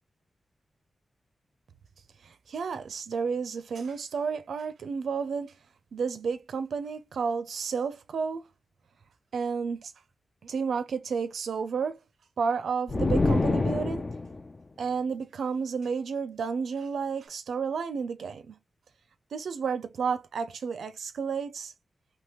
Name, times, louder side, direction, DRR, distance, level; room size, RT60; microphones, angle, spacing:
voice 1, 2.2-5.5 5.9-8.5 9.3-9.9 10.4-12.0 12.4-14.1 14.8-18.6 19.3-21.7, right 5 dB, 90° right, 0.5 m, -31 dB
sound 1, 12.9-14.5, left 3 dB, 35° left, 0.5 m, -26 dB
3.5 x 3.0 x 3.0 m
wide cardioid pair, 80°, 0 cm